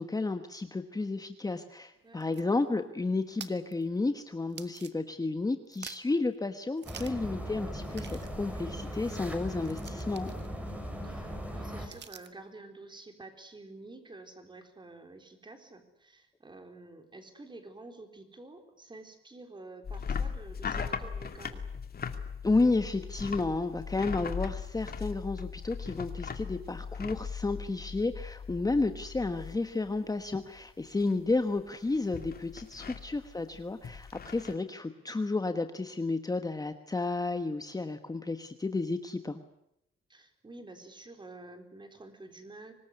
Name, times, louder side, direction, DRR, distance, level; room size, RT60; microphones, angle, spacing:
voice 1, 0.0-10.3 22.4-39.4, left 3 dB, 15° left, 8 dB, 1.2 m, -32 dB
voice 2, 2.0-2.4 11.0-21.6 32.8-32.9 40.1-42.7, right 2 dB, 20° right, 6 dB, 3.8 m, -49 dB
sound 1, 2.0-5.4 5.6-6.2 6.8-7.3 7.6-7.7 7.9-12.5, right 7 dB, 55° right, 1.6 m, -50 dB
sound 2, 6.8-11.9, equal, 5° right, 4.8 m, -39 dB
sound 3, 19.8-30.0 30.2-30.7 31.0-34.6, left 6 dB, 45° left, 2.4 m, -39 dB
25.5 x 20.0 x 9.8 m, 0.80 s
wide cardioid pair, 145°, 21 cm